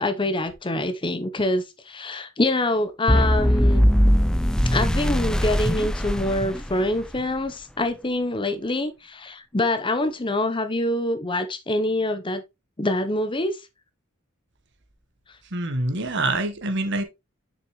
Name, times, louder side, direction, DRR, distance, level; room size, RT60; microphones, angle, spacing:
voice 1, 0.0-3.9 4.7-12.4 12.8-13.6, left 1 dB, 25° left, 0.8 m, -25 dB
sound 1, 3.1-7.2, equal, 5° left, 0.4 m, -20 dB
voice 2, 15.5-17.0, right 2 dB, 60° right, 1.3 m, -25 dB
6.4 x 6.1 x 3.1 m
head